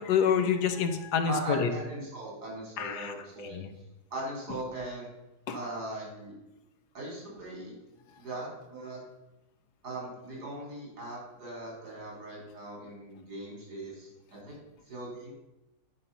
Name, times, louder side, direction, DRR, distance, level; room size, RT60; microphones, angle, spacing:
voice 1, 0.0-1.7 2.8-3.1 3.5-3.7 5.5-5.6, left 7 dB, 90° left, 8 dB, 1.5 m, -27 dB
voice 2, 1.3-3.6 4.1-5.1 5.5-6.3 6.9-7.7 8.2-9.0 9.8-14.6 14.9-15.3, right 2 dB, 80° right, -3 dB, 4.4 m, -39 dB
10.5 x 5.5 x 5.4 m, 0.96 s
omnidirectional pair, 1.7 m